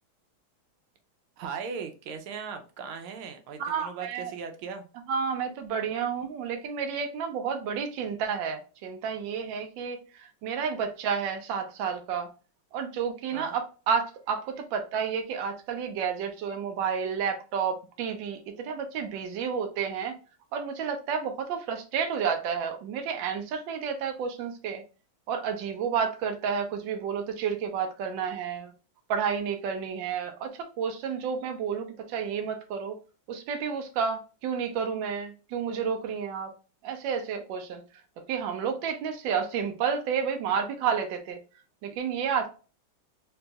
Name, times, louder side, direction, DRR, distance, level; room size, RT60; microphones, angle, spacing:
voice 1, 1.4-4.8 13.3-13.5, right 6 dB, 90° right, 1.5 m, -38 dB
voice 2, 3.6-4.3 5.1-12.3 12.7-20.1 20.5-24.8 25.3-28.7 29.1-33.0 33.3-36.5 36.8-37.8 38.3-41.4 41.8-42.5, right 6 dB, 75° right, 1.3 m, -31 dB
3.4 x 2.9 x 2.2 m
omnidirectional pair, 2.2 m